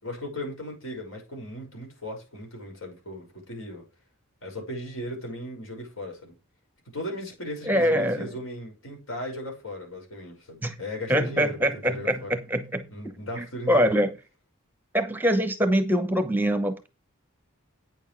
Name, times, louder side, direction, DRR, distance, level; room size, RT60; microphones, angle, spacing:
voice 1, 0.0-3.8 4.4-6.3 6.9-12.3 12.9-13.8, left 1 dB, 70° left, 5.6 m, -37 dB
voice 2, 7.7-8.3 10.6-10.8 11.1-12.9 13.3-14.1 14.9-16.9, equal, 10° right, 0.9 m, -24 dB
9.3 x 7.2 x 4.6 m
head